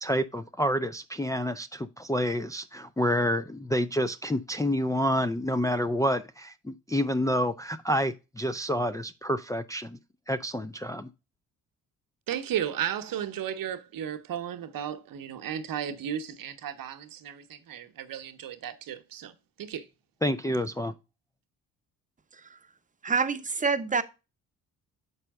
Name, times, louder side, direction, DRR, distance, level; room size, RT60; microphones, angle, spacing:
voice 1, 0.0-10.0 10.3-11.1 20.2-20.9, equal, 10° left, 0.4 m, -28 dB
voice 2, 12.3-19.3 19.6-19.9, right 9 dB, 65° right, 0.9 m, -34 dB
voice 3, 23.0-24.0, right 5 dB, 20° right, 0.9 m, -27 dB
6.7 x 5.5 x 3.5 m
supercardioid pair, 55°, 37 cm